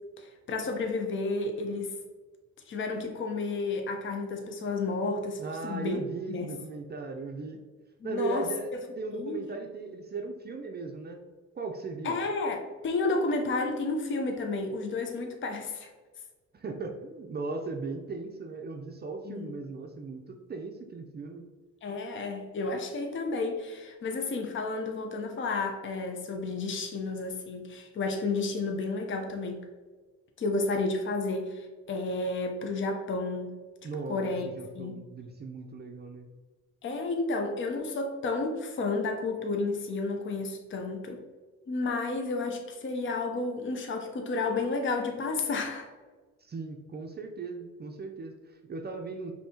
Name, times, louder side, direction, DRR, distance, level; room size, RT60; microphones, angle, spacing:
voice 1, 0.2-2.0 2.7-6.0 6.3-6.5 8.0-8.5 9.1-9.4 12.0-15.9 19.3-19.6 21.8-29.6 30.4-33.5 34.1-34.4 34.7-35.0 36.8-41.2 41.7-45.9, left 3 dB, 40° left, 4 dB, 0.6 m, -31 dB
voice 2, 5.4-7.6 8.0-11.3 11.5-12.2 16.5-21.5 33.8-36.3 46.4-49.3, right 3 dB, 35° right, 3 dB, 0.5 m, -37 dB
5.2 x 2.8 x 2.8 m, 1.3 s
cardioid pair, 90°, 30 cm